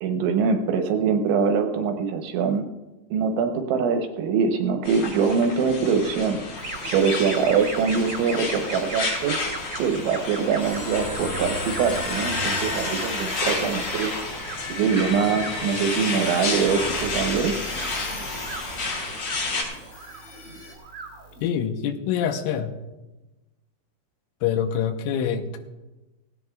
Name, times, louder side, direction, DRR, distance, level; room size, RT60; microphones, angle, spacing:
voice 1, 0.0-2.6 3.1-6.4 6.9-9.4 9.8-17.5, right 6 dB, 75° right, 5 dB, 3.0 m, -23 dB
sound 1, 4.8-19.6, left 3 dB, 50° left, 5.4 m, -31 dB
sound 2, 6.6-21.5, right 3 dB, 35° right, 1.8 m, -39 dB
sound 3, 10.6-20.7, left 1 dB, 30° left, 3.6 m, -35 dB
voice 2, 21.4-22.7 24.4-25.6, left 8 dB, 80° left, 6 dB, 3.2 m, -25 dB
18.5 x 17.0 x 2.4 m, 1.1 s
omnidirectional pair, 5.9 m